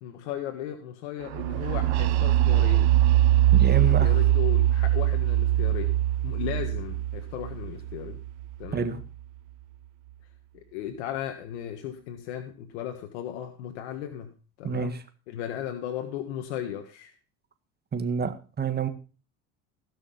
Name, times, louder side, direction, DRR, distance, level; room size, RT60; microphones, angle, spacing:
voice 1, 0.0-3.0 3.7-6.0 6.2-8.2 8.6-9.0 10.7-14.9 15.3-17.1, left 10 dB, 85° left, 6 dB, 1.6 m, -36 dB
sound 1, 1.3-9.0, right 13 dB, 85° right, 0.8 m, -22 dB
voice 2, 3.5-4.1 8.7-9.0 14.6-15.0 17.9-18.9, right 6 dB, 30° right, 9 dB, 2.0 m, -28 dB
16.5 x 6.5 x 5.7 m, 0.36 s
supercardioid pair, 95°, 33 cm